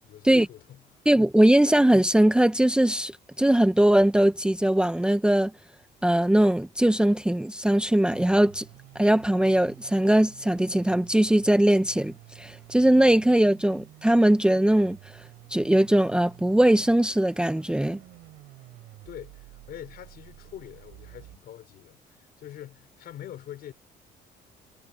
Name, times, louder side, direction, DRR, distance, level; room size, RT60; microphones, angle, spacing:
voice 1, 0.0-1.0 19.1-23.7, left 11 dB, 65° left, 5.4 m, -44 dB
voice 2, 1.1-3.1 3.4-5.5 6.0-8.6 8.9-15.0 15.5-18.0, right 1 dB, 5° right, 0.9 m, -20 dB
sound 1, 8.1-21.4, right 17 dB, 85° right, 4.4 m, -50 dB
cardioid pair, 110°, 17 cm